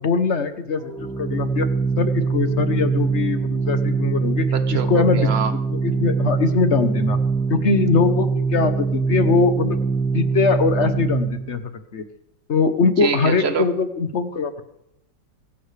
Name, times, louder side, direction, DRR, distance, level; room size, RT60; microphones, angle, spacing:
voice 1, 0.0-1.7 2.0-4.5 4.9-7.2 7.5-9.8 10.1-11.6 11.9-12.0 12.5-14.6, left 4 dB, 50° left, 9 dB, 1.0 m, -22 dB
Organ, 0.8-11.6, right 4 dB, 5° left, 0.5 m, -23 dB
voice 2, 4.5-5.5 13.0-13.7, right 6 dB, 45° right, 10 dB, 1.0 m, -25 dB
22.5 x 11.0 x 3.3 m, 0.84 s
omnidirectional pair, 2.0 m